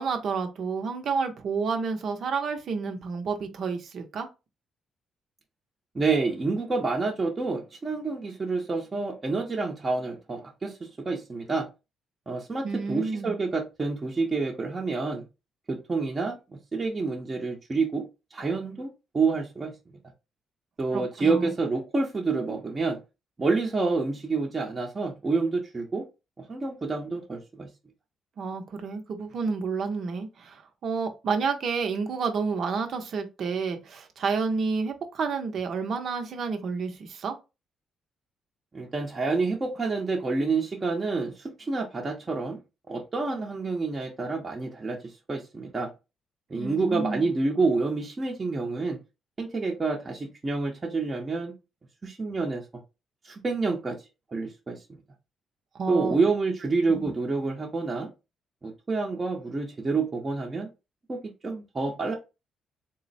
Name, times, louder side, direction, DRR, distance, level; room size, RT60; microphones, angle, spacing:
voice 1, 0.0-4.3 12.6-13.3 20.9-21.5 28.4-37.4 46.5-47.3 55.7-56.1 56.9-57.1, right 5 dB, 60° right, 0.8 m, -30 dB
voice 2, 5.9-11.7 12.3-15.2 15.7-18.1 18.3-18.9 19.1-19.7 20.8-23.0 23.4-26.0 26.4-27.7 38.7-42.6 42.9-45.0 45.3-45.9 46.5-49.0 49.4-51.5 52.0-52.6 53.2-54.0 54.3-55.0 55.9-58.1 58.6-60.7 61.1-62.1, right 3 dB, 30° right, 0.9 m, -28 dB
3.8 x 2.1 x 4.0 m
cardioid pair, 90°, 0 cm